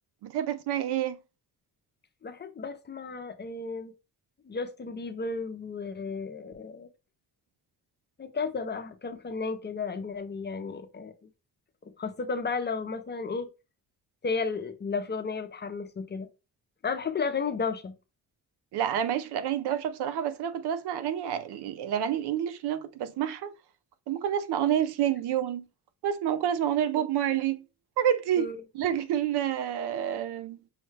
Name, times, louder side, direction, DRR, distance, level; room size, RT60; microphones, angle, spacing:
voice 1, 0.2-1.2 18.7-23.5 24.1-25.7 26.0-27.6 28.0-28.5 28.7-30.6, right 10 dB, 85° right, 0.6 m, -28 dB
voice 2, 2.2-3.9 4.5-6.9 8.2-11.1 12.0-13.5 14.2-16.3 16.8-17.9 28.4-28.6, left 4 dB, 30° left, 0.5 m, -33 dB
5.6 x 2.1 x 3.2 m
cardioid pair, 115°, 38 cm